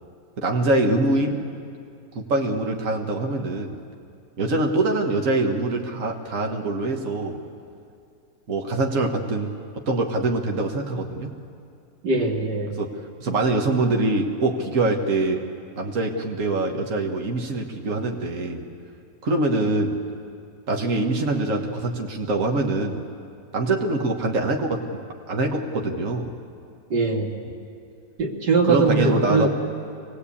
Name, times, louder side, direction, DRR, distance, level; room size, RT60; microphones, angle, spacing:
voice 1, 0.4-1.5 2.1-3.8 4.4-7.4 8.5-11.3 12.8-15.4 15.7-18.6 19.2-20.0 20.7-23.0 23.5-24.8 25.3-26.3 28.6-29.5, right 2 dB, 50° right, 1 dB, 1.7 m, -24 dB
voice 2, 12.0-12.7 26.9-27.3 28.2-29.5, right 3 dB, 80° right, 1 dB, 2.7 m, -21 dB
25.0 x 19.5 x 8.5 m, 2.4 s
omnidirectional pair, 1.8 m